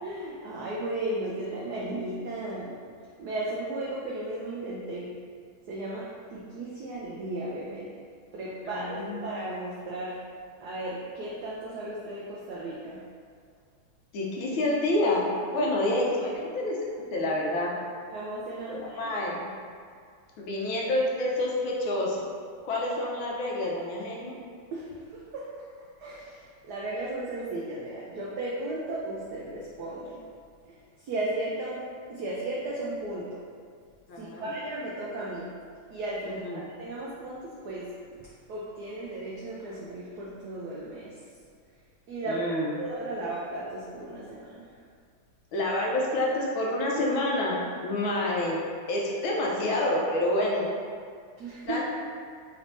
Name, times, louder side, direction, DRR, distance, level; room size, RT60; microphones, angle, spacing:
voice 1, 0.0-2.7 3.2-5.1 5.7-7.9 8.3-10.2 10.6-13.0 15.5-15.7 18.1-19.0 24.7-25.5 26.0-30.2 31.0-31.8 32.1-33.4 34.2-35.5 35.9-37.9 38.5-41.1 42.1-42.4 42.8-44.6 51.4-51.8, right 2 dB, 80° right, -6 dB, 0.8 m, -35 dB
voice 2, 8.6-9.3 14.1-15.2 15.5-16.7 17.1-17.7 18.7-19.5 20.4-22.2 22.6-24.3 34.1-34.5 36.3-36.7 42.2-42.7 45.5-48.6 48.9-50.7 51.6-51.8, left 1 dB, 80° left, -3 dB, 1.4 m, -28 dB
4.1 x 3.3 x 2.6 m, 2.1 s
omnidirectional pair, 2.3 m